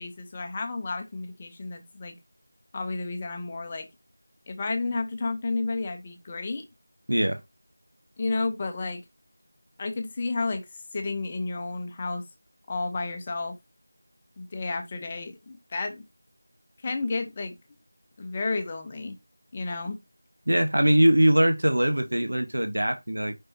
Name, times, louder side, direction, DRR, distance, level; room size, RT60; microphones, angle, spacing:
voice 1, 0.0-2.1 2.7-3.9 4.5-6.6 8.2-9.0 9.8-12.2 12.7-13.5 14.4-16.0 16.8-17.5 18.2-19.2 19.5-20.0, left 3 dB, 20° left, 0.9 m, -31 dB
voice 2, 7.1-7.4 20.5-23.3, right 1 dB, 65° right, 1.1 m, -22 dB
6.9 x 5.6 x 2.7 m
figure-of-eight pair, 170°, 0 cm